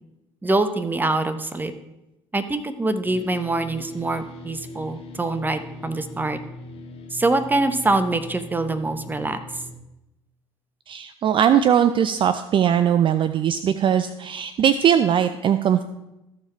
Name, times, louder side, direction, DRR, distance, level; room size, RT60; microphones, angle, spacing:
voice 1, 0.4-1.7 2.3-6.4 7.1-9.4, right 2 dB, 15° right, 9 dB, 0.9 m, -24 dB
sound 1, 3.0-9.7, left 3 dB, 55° left, 2.0 m, -40 dB
voice 2, 10.9-15.8, right 9 dB, 40° right, 11 dB, 0.5 m, -20 dB
14.0 x 4.7 x 4.4 m, 0.93 s
hypercardioid pair, 60°, 13 cm